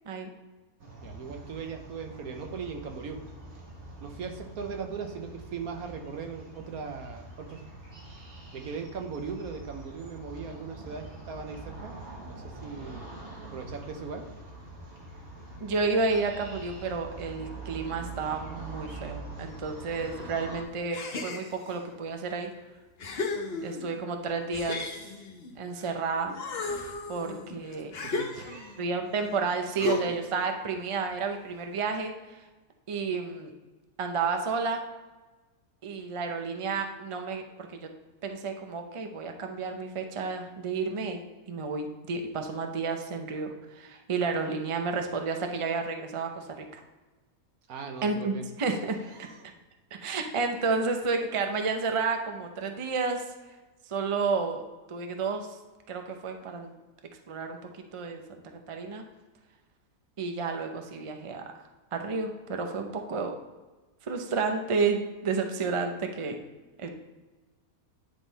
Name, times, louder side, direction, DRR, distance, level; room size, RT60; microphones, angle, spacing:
sound 1, 0.8-20.6, right 2 dB, 50° right, 1.6 m, -44 dB
voice 1, 1.0-3.2 4.0-7.7 8.5-13.1 13.4-14.3 28.0-28.9 47.7-48.5 49.0-49.5, right 5 dB, 80° right, 4 dB, 1.4 m, -39 dB
voice 2, 15.6-22.5 23.6-24.8 25.6-26.4 27.1-27.9 28.8-32.1 32.9-33.5 34.0-34.9 35.8-37.4 37.7-37.9 38.2-41.2 41.5-46.8 48.0-48.3 48.6-49.3 49.9-53.2 53.9-54.6 54.9-55.5 55.9-56.7 57.3-58.4 58.7-59.0 60.2-61.5 61.9-63.3 64.1-66.4 66.8-66.9, right 4 dB, 35° right, 5 dB, 0.5 m, -31 dB
sound 2, 20.9-21.8 22.4-22.5 23.0-24.0 24.5-26.0 26.3-28.8 29.8-30.4, left 3 dB, 50° left, 1.0 m, -34 dB
9.9 x 3.9 x 4.0 m, 1.2 s
omnidirectional pair, 1.5 m